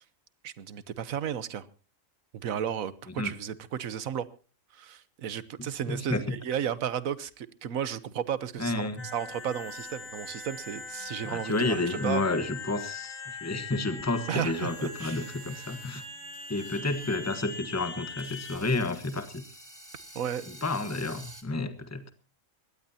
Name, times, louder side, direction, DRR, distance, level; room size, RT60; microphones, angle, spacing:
voice 1, 0.4-1.7 2.3-4.3 4.7-12.2 14.3-15.3 20.1-20.5, right 9 dB, 85° right, 1.4 m, -34 dB
voice 2, 5.9-6.2 8.6-9.0 11.3-16.0 16.5-19.4 20.5-22.0, left 2 dB, 10° left, 1.2 m, -30 dB
sound 1, 9.0-18.6, left 4 dB, 75° left, 3.6 m, -41 dB
sound 2, 14.7-17.2 17.5-17.6 18.2-21.4, right 1 dB, 15° right, 2.4 m, -50 dB
22.5 x 18.0 x 2.8 m
omnidirectional pair, 1.4 m